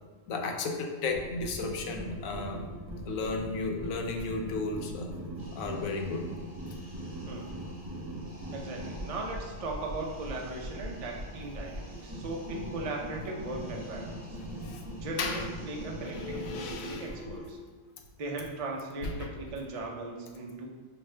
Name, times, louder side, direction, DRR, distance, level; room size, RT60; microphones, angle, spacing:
voice 1, 0.3-2.6 3.1-5.1 5.5-6.2 14.4-14.8 15.2-15.5 16.0-17.2 19.0-19.3, left 3 dB, 75° left, 3 dB, 1.0 m, -34 dB
sound 1, 1.1-17.5, right 1 dB, 5° right, 1.3 m, -41 dB
sound 2, 5.4-16.7, left 1 dB, 45° right, 1.4 m, -54 dB
voice 2, 8.5-14.4 15.0-17.6 18.2-20.7, right 2 dB, 60° right, 0 dB, 0.3 m, -38 dB
6.0 x 2.5 x 3.2 m, 1.4 s
omnidirectional pair, 1.4 m